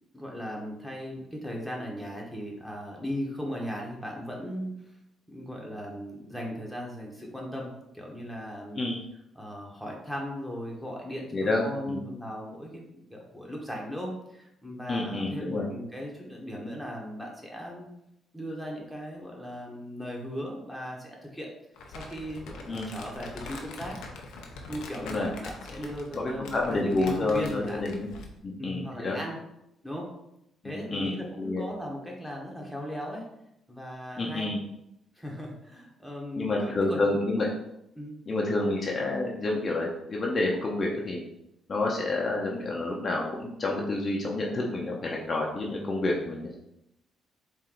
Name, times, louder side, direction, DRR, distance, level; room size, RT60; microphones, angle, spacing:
voice 1, 0.1-4.9 5.3-8.9 9.3-17.9 18.3-21.5 21.9-24.0 24.7-27.9 28.6-29.4 29.8-30.1 30.6-33.3 33.7-34.5 35.1-37.1 37.9-38.2, equal, ahead, -2 dB, 1.3 m, -37 dB
voice 2, 11.3-12.0 14.9-15.6 22.7-22.9 25.0-25.3 26.1-28.1 28.4-29.2 30.6-31.6 34.2-34.6 36.4-37.5 38.3-41.2 41.7-46.6, left 2 dB, 40° left, -2 dB, 0.8 m, -29 dB
Crumpling crinkling, 21.8-28.4, left 3 dB, 85° left, 0.7 m, -43 dB
4.4 x 2.7 x 3.9 m, 0.82 s
cardioid pair, 90°, 0 cm